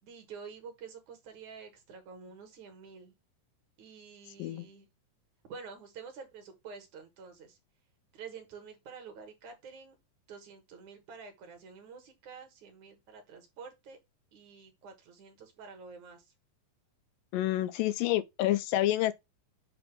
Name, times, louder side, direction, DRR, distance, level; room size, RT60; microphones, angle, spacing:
voice 1, 0.0-3.2 3.8-4.9 5.5-7.6 8.1-10.0 10.3-14.0 14.3-16.3, right 5 dB, 60° right, 2.6 m, -48 dB
voice 2, 17.3-19.1, left 14 dB, 80° left, 2.2 m, -28 dB
7.7 x 2.7 x 5.9 m
omnidirectional pair, 4.1 m